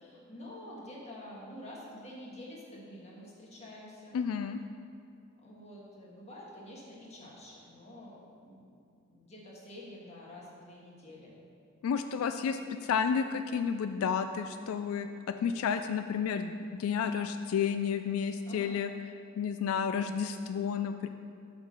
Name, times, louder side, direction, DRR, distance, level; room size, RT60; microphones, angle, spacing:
voice 1, 0.0-4.2 5.4-8.7 9.1-11.3 18.4-18.8, left 1 dB, 35° left, -4 dB, 1.5 m, -48 dB
voice 2, 4.1-4.6 11.8-18.9 19.4-21.1, left 6 dB, 90° left, 8 dB, 0.3 m, -31 dB
8.1 x 3.8 x 6.4 m, 2.4 s
head